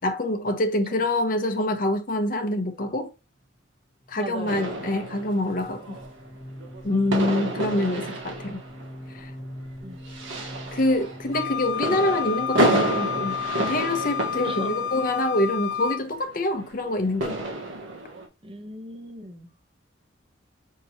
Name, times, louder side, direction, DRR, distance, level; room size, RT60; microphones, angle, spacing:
voice 1, 0.0-3.1 4.1-6.0 6.8-8.6 9.1-9.3 10.7-17.4, left 1 dB, 45° left, 0.8 m, -26 dB
sound 1, 4.0-16.4, equal, 15° left, 0.7 m, -44 dB
voice 2, 4.2-5.0 7.8-8.1 9.8-10.0 14.4-14.8 18.4-19.5, right 1 dB, 30° right, 0.8 m, -39 dB
sound 2, 4.5-18.3, right 1 dB, 75° right, 1.2 m, -30 dB
Wind instrument woodwind instrument, 11.3-16.0, left 9 dB, 85° left, 0.4 m, -30 dB
5.6 x 3.0 x 2.7 m
head